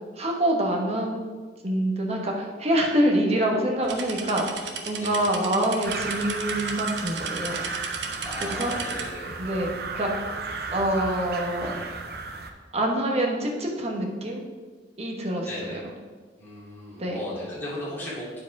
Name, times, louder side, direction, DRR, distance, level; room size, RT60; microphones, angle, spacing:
voice 1, 0.2-1.2 1.6-7.6 8.4-8.7 9.4-10.3 10.7-11.8 12.7-14.4 15.0-15.5 17.0-17.3, right 1 dB, 35° right, 0 dB, 1.2 m, -26 dB
sound 1, 3.8-9.0, right 5 dB, 85° right, 0.9 m, -36 dB
sound 2, 5.8-12.5, right 4 dB, 60° right, 0.7 m, -34 dB
voice 2, 8.2-9.4 15.4-15.8 16.4-18.4, left 1 dB, 10° left, -9 dB, 2.7 m, -36 dB
8.9 x 4.9 x 4.7 m, 1.5 s
head